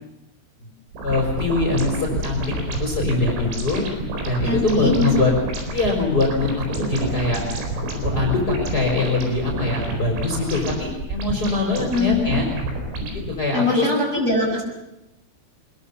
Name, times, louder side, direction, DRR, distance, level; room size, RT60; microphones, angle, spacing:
sound 1, 0.9-13.3, right 1 dB, 80° right, 6.8 m, -29 dB
voice 1, 1.0-2.4 2.8-3.8 4.2-5.3 5.7-7.4 7.9-12.5 13.3-13.9, left 3 dB, 20° left, 0 dB, 4.7 m, -23 dB
voice 2, 4.4-5.1 11.9-12.4 13.5-14.7, left 2 dB, 20° right, 0 dB, 6.4 m, -22 dB
24.5 x 22.0 x 7.0 m, 0.94 s
omnidirectional pair, 5.5 m